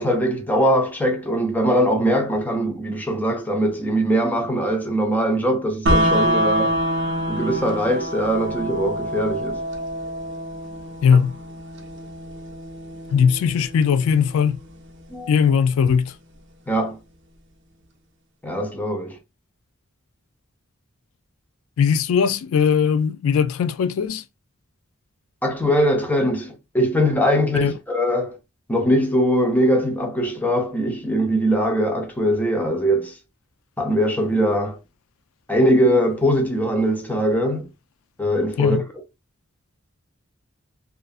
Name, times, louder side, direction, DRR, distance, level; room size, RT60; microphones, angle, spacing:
voice 1, 0.0-6.8 7.3-9.6 15.1-15.3 16.7-17.0 18.4-19.2 25.4-28.4 28.7-33.2 33.8-34.8 35.5-37.7 38.2-38.8, equal, 10° left, 0.5 m, -21 dB
sound 1, 5.9-15.8, equal, 55° right, 0.6 m, -26 dB
voice 2, 11.0-11.4 13.1-14.6 15.3-16.1 21.8-24.2 27.6-27.7 38.6-38.8, left 7 dB, 75° left, 0.3 m, -19 dB
2.5 x 2.4 x 2.4 m
head